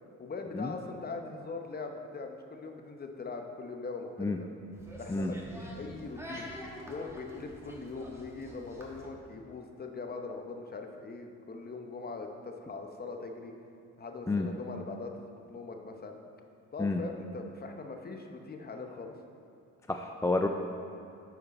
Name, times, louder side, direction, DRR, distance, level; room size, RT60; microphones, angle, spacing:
voice 1, 0.2-4.5 5.0-6.5 6.9-13.5 14.0-16.2 16.7-19.1, left 3 dB, 30° left, 4 dB, 0.8 m, -41 dB
sound 1, 4.7-9.1, equal, 10° right, 1.4 m, -47 dB
voice 2, 19.9-20.5, left 2 dB, 10° left, 4 dB, 0.3 m, -29 dB
9.4 x 5.0 x 4.2 m, 2.5 s
cardioid pair, 90°, 30 cm